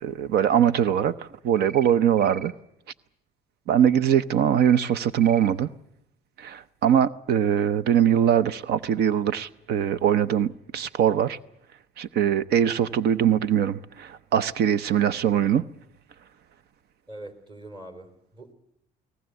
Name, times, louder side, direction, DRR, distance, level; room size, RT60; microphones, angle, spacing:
voice 1, 0.0-2.5 3.7-5.7 6.4-11.4 12.0-15.6, right 9 dB, 70° right, 0.8 m, -22 dB
sound 1, 1.6-1.9 2.2-2.5 4.6-4.9 5.2-5.5, right 5 dB, 55° right, 1.9 m, -42 dB
voice 2, 17.1-18.5, right 1 dB, 25° right, 3.7 m, -43 dB
23.0 x 18.0 x 8.1 m
cardioid pair, 110°, 17 cm